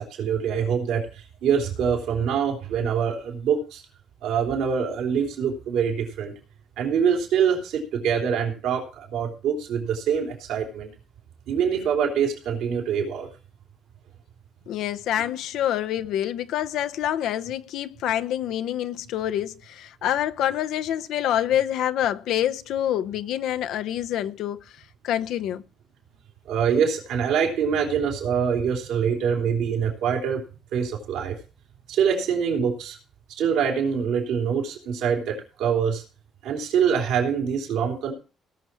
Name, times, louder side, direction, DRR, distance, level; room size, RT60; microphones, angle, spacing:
voice 1, 0.0-3.8 4.2-6.3 6.8-10.9 11.5-13.3 15.2-15.3 26.5-30.4 30.7-31.4 31.9-33.0 33.4-36.0 36.4-38.1, right 7 dB, 85° right, 3.6 m, -24 dB
voice 2, 14.7-24.7 25.0-25.6, left 11 dB, 80° left, 0.6 m, -26 dB
18.0 x 6.3 x 4.5 m
cardioid pair, 95°, 0 cm